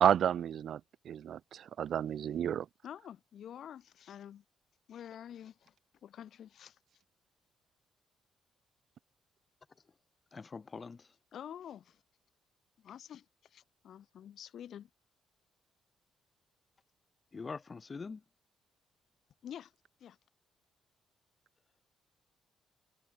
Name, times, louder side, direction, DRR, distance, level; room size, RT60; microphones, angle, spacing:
voice 1, 0.0-2.7, right 9 dB, 65° right, 0.3 m, -30 dB
voice 2, 2.8-4.4 4.9-5.7 6.0-6.8 11.3-12.0 12.8-14.9 19.4-19.7 20.0-20.2, left 9 dB, 65° left, 3.6 m, -48 dB
voice 3, 10.3-11.1 17.3-18.2, left 4 dB, 35° left, 1.1 m, -44 dB
cardioid pair, 85°, 0 cm